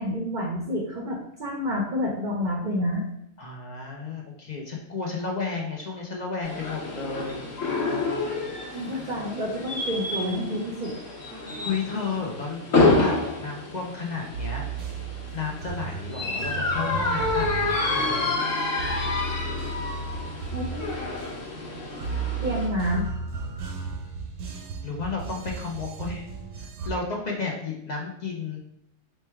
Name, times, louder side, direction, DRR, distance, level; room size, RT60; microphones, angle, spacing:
voice 1, 0.0-3.1 8.7-10.9 20.5-20.9 22.4-23.1, equal, 50° right, -1 dB, 0.6 m, -29 dB
voice 2, 3.4-7.4 11.6-14.7 15.3-18.3 24.8-26.2 26.6-28.6, left 4 dB, 50° left, -1 dB, 0.5 m, -32 dB
sound 1, 6.4-22.7, left 3 dB, 75° left, 1.4 m, -28 dB
sound 2, 14.3-26.9, right 4 dB, 75° right, 0.9 m, -35 dB
3.2 x 2.2 x 4.3 m, 0.78 s
omnidirectional pair, 1.4 m